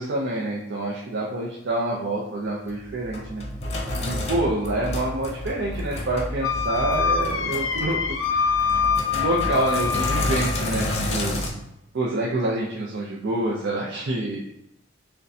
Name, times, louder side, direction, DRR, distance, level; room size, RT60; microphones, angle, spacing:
voice 1, 0.0-3.4 4.0-8.7 9.1-11.5 11.9-14.4, right 2 dB, 60° right, -4 dB, 0.5 m, -27 dB
Sink (filling or washing), 2.7-11.5, left 1 dB, 35° left, 0.7 m, -30 dB
Wind instrument woodwind instrument, 6.4-10.8, left 6 dB, 70° left, 0.5 m, -25 dB
6.5 x 2.2 x 2.7 m, 0.85 s
head